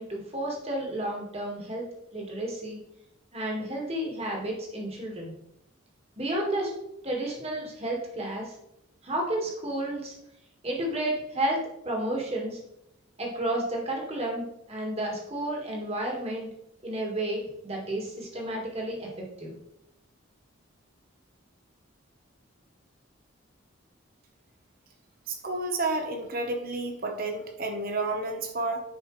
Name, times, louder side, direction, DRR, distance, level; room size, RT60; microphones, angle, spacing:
voice 1, 0.0-1.9 2.1-2.8 3.3-5.3 6.2-6.7 7.0-8.5 9.0-10.1 10.6-11.6 11.9-12.6 13.2-16.5 16.8-19.1 19.4-19.5, right 1 dB, 30° right, -1 dB, 1.8 m, -31 dB
voice 2, 25.3-28.8, right 2 dB, 45° right, 4 dB, 1.1 m, -30 dB
10.0 x 4.9 x 3.2 m, 0.82 s
head